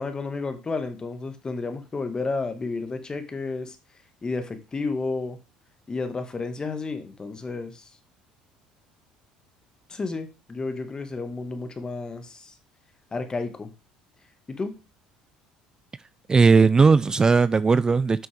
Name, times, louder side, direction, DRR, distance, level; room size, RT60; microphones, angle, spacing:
voice 1, 0.0-3.8 4.2-5.4 5.9-7.9 9.9-12.5 13.1-13.7 14.5-14.8, left 3 dB, 25° left, 1.8 m, -31 dB
voice 2, 16.3-18.3, right 4 dB, 25° right, 0.3 m, -17 dB
9.1 x 6.1 x 3.5 m
supercardioid pair, 80°, 3 cm